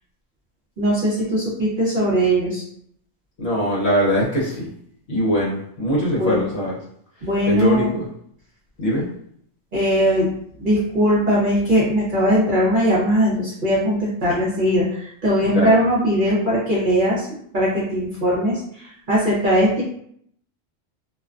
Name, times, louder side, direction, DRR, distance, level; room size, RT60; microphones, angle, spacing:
voice 1, 0.8-2.6 6.2-6.5 7.2-7.9 9.7-10.3 10.6-19.8, equal, 45° right, -6 dB, 0.8 m, -20 dB
voice 2, 3.4-4.7 5.1-6.8 7.5-8.1 8.8-9.1 15.4-15.8, equal, 60° left, -5 dB, 0.9 m, -21 dB
2.4 x 2.2 x 2.4 m, 0.67 s
omnidirectional pair, 1.4 m